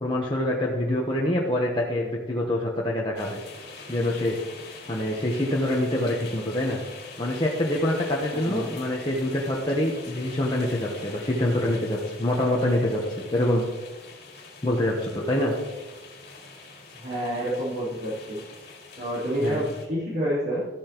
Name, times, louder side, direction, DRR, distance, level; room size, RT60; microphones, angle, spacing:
voice 1, 0.0-3.4 3.9-4.4 4.9-6.8 7.2-13.6 14.6-15.5 19.4-19.6, left 1 dB, 25° left, -3 dB, 1.0 m, -25 dB
sound 1, 3.2-19.9, left 4 dB, 50° left, 2.4 m, -44 dB
voice 2, 8.3-8.7 16.9-18.4 19.0-20.6, equal, 55° right, -11 dB, 3.5 m, -28 dB
13.5 x 8.3 x 3.0 m, 1.3 s
head